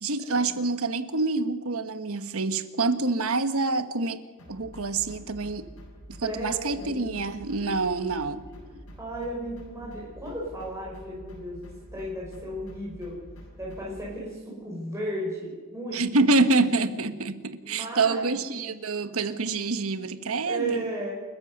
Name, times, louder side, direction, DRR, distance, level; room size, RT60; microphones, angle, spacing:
voice 1, 0.0-4.2 4.5-5.7 6.1-8.4 15.9-20.9, right 3 dB, 70° right, 11 dB, 1.4 m, -26 dB
sound 1, 4.4-14.1, equal, 70° left, 6.5 m, -47 dB
voice 2, 6.2-7.0 7.6-7.7 8.4-8.6 9.0-13.2 13.6-16.0 17.7-18.3 20.4-21.1, right 1 dB, 15° right, -5 dB, 5.8 m, -35 dB
29.5 x 14.0 x 6.6 m, 1.4 s
head